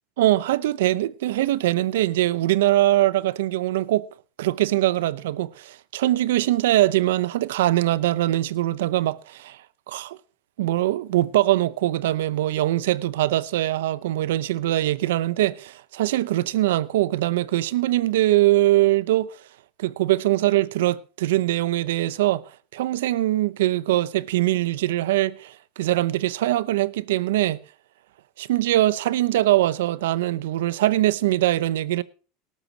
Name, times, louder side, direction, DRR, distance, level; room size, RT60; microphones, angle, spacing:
voice 1, 0.2-4.1 4.4-9.6 9.9-10.2 10.6-19.3 19.8-22.4 22.7-27.6 28.4-32.0, right 15 dB, 90° right, 0.8 m, -22 dB
18.5 x 12.5 x 2.8 m
supercardioid pair, 135°, 0 cm